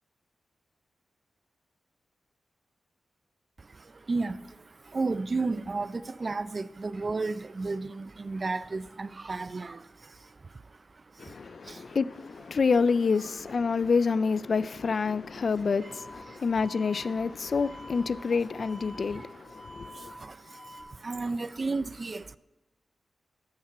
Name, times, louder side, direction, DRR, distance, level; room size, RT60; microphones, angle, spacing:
voice 1, 3.6-12.0 15.8-15.9 16.3-16.5 17.0-17.2 17.5-17.8 18.3-18.4 18.9-22.4, right 3 dB, 45° right, 0.4 m, -35 dB
voice 2, 11.2-20.1, left 5 dB, 60° left, 0.4 m, -28 dB
sound 1, 15.8-20.8, left 1 dB, 80° right, 2.3 m, -48 dB
13.0 x 7.3 x 6.0 m
cardioid pair, 70°, 0 cm